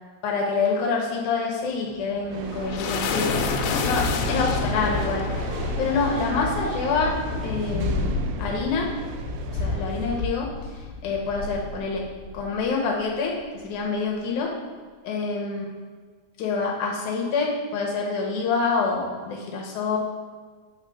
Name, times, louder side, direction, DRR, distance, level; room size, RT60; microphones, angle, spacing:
voice 1, 0.2-3.5 3.8-5.3 5.8-7.2 7.4-8.1 8.4-8.9 9.5-12.1 12.3-14.6 15.0-15.7 16.4-20.0, left 4 dB, 70° left, 0 dB, 1.9 m, -26 dB
sound 1, 1.9-12.7, left 4 dB, 90° left, 2.8 m, -29 dB
sound 2, 2.3-10.2, right 6 dB, 85° right, 2.0 m, -38 dB
8.8 x 3.7 x 5.6 m, 1.5 s
omnidirectional pair, 4.6 m